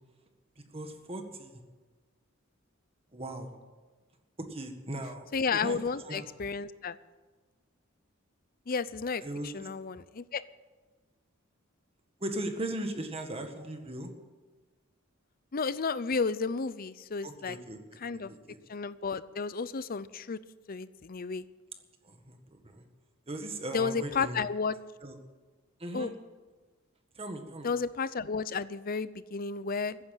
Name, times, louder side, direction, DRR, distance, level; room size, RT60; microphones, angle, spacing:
voice 1, 0.6-1.5 3.1-3.5 4.4-5.3 5.5-5.8 6.0-6.2 9.2-9.7 12.2-14.1 17.2-17.8 18.3-18.6 22.0-22.8 23.3-24.4 25.0-25.1 25.8-26.1 27.2-27.7, right 1 dB, 30° right, 5 dB, 1.7 m, -38 dB
voice 2, 5.3-7.0 8.7-10.4 15.5-17.6 18.0-18.3 18.7-20.4 20.7-21.4 23.7-24.8 25.9-26.1 27.6-30.0, left 5 dB, 45° left, 16 dB, 0.6 m, -32 dB
14.5 x 10.0 x 9.0 m, 1.3 s
head